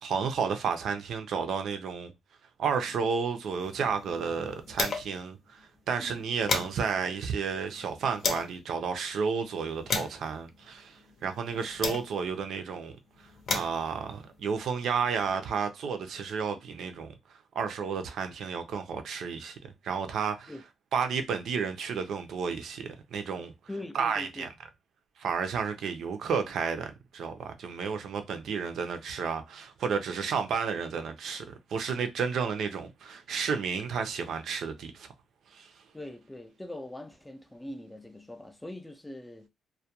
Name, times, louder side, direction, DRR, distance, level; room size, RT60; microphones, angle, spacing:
voice 1, 0.0-2.1 2.6-13.0 13.5-17.1 17.5-19.6 19.8-20.5 20.9-23.5 23.9-24.5 25.2-35.1 35.5-35.7, right 6 dB, 70° right, 0.5 m, -32 dB
sound 1, 3.5-5.3 5.6-5.7 6.0-8.6 9.2-12.4 13.1-15.3, left 4 dB, 55° left, 0.6 m, -36 dB
voice 2, 23.7-24.5 35.9-39.5, left 1 dB, 10° left, 0.4 m, -42 dB
2.3 x 2.1 x 2.8 m
cardioid pair, 90°, 0 cm